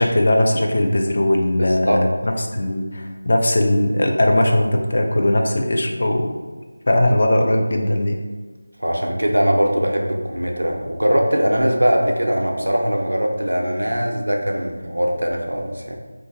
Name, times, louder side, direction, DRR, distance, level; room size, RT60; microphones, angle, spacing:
voice 1, 0.0-6.3 6.9-8.2, left 1 dB, 40° left, 2 dB, 0.3 m, -19 dB
voice 2, 1.6-2.0 8.8-16.0, equal, 70° right, 1 dB, 0.5 m, -21 dB
2.5 x 2.4 x 3.6 m, 1.4 s
figure-of-eight pair, 165°, 0 cm